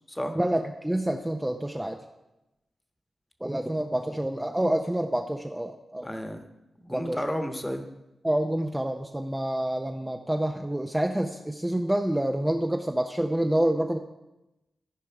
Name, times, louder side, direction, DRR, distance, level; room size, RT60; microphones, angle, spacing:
voice 1, 0.3-2.0 3.4-6.1 6.9-7.2 8.2-14.0, right 1 dB, 10° right, 3 dB, 0.6 m, -27 dB
voice 2, 6.0-6.4 6.8-7.9, equal, 15° left, 5 dB, 1.2 m, -32 dB
14.5 x 5.2 x 4.6 m, 0.95 s
cardioid pair, 65°, 0 cm